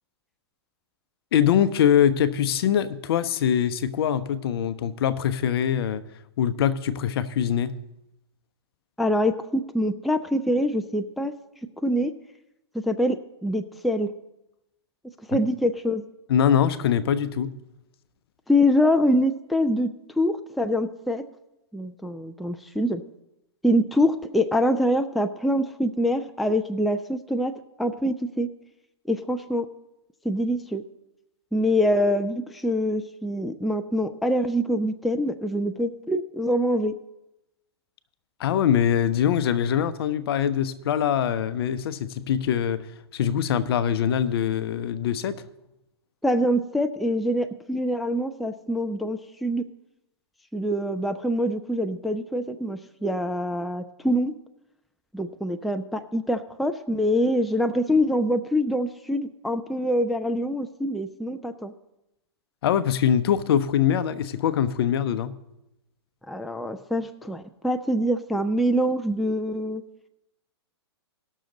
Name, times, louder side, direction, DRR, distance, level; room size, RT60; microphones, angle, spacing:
voice 1, 1.3-6.0 6.4-7.8 15.3-15.4 16.3-17.5 38.4-42.9 43.1-45.4 62.6-65.4, left 9 dB, 60° left, 0.7 m, -23 dB
voice 2, 9.0-11.3 11.8-12.1 12.7-14.1 15.3-16.0 18.5-19.9 20.2-21.2 21.7-23.0 23.6-27.5 27.8-28.5 29.1-29.7 30.2-30.8 31.5-36.9 46.2-49.6 50.5-54.3 55.1-61.7 66.3-69.8, equal, ahead, 0.3 m, -25 dB
18.0 x 6.4 x 3.9 m
hypercardioid pair, 125°, 14 cm